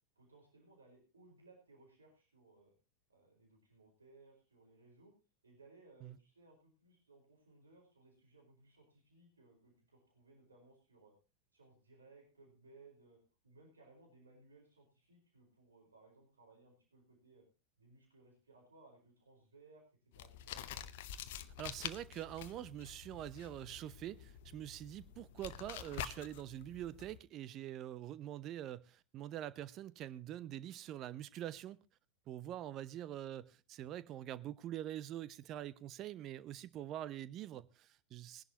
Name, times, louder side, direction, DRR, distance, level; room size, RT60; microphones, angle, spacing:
voice 1, 0.1-2.7 3.1-5.1 5.4-11.1 11.5-13.2 13.4-17.4 17.8-19.8 20.1-20.8 32.4-32.7, right 3 dB, 75° right, 1 dB, 4.9 m, -63 dB
sound 1, 20.1-27.2, left 11 dB, 50° left, 0.8 m, -48 dB
voice 2, 21.6-31.8 32.3-38.4, right 12 dB, 35° right, 18 dB, 0.7 m, -45 dB
20.0 x 11.0 x 2.9 m, 0.31 s
figure-of-eight pair, 90°, 0 cm